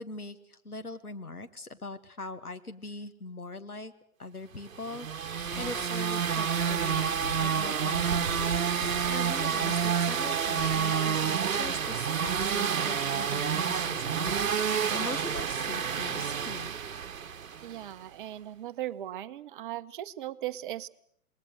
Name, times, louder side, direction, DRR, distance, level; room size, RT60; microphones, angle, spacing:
voice 1, 0.0-3.9 4.2-16.7, left 2 dB, 80° left, 9 dB, 2.0 m, -42 dB
sound 1, 4.8-17.7, right 7 dB, 65° right, 1.2 m, -29 dB
sound 2, 5.5-6.0 7.2-7.5 8.8-9.2 10.6-11.0 12.2-12.6 14.2-14.6, left 4 dB, 55° left, 5.4 m, -42 dB
voice 2, 17.6-20.9, right 13 dB, 35° right, 13 dB, 1.0 m, -38 dB
28.0 x 21.0 x 6.4 m, 0.67 s
figure-of-eight pair, 115°, 44 cm